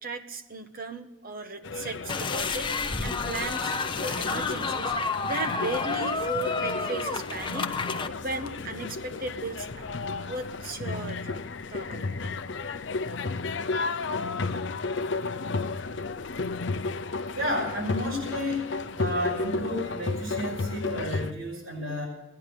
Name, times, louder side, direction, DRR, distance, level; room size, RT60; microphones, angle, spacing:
voice 1, 0.0-2.7 3.0-7.7 8.0-10.0 10.3-11.4 11.7-12.2, right 2 dB, 45° right, 7 dB, 1.2 m, -36 dB
sound 1, 1.6-21.3, left 3 dB, 60° left, 0.7 m, -33 dB
sound 2, 2.1-8.1, left 4 dB, 25° left, 0.8 m, -30 dB
voice 2, 17.3-18.7 19.0-22.1, left 1 dB, 80° right, -3 dB, 5.8 m, -31 dB
17.0 x 10.5 x 6.7 m, 1.0 s
head